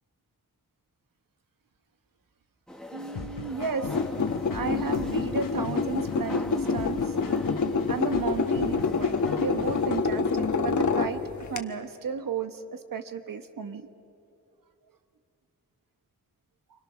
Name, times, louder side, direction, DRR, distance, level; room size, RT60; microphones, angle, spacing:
sound 1, 2.7-9.9, left 1 dB, ahead, 1.5 m, -44 dB
voice 1, 2.9-3.8 4.5-7.0 7.9-11.2 11.5-12.6 12.9-13.9, right 6 dB, 90° right, 8 dB, 1.2 m, -33 dB
sound 2, 3.1-10.4, left 6 dB, 85° left, 1.2 m, -39 dB
sound 3, 3.8-11.6, left 4 dB, 60° left, 1.2 m, -27 dB
28.0 x 25.5 x 6.2 m, 2.6 s
wide cardioid pair, 140°, 32 cm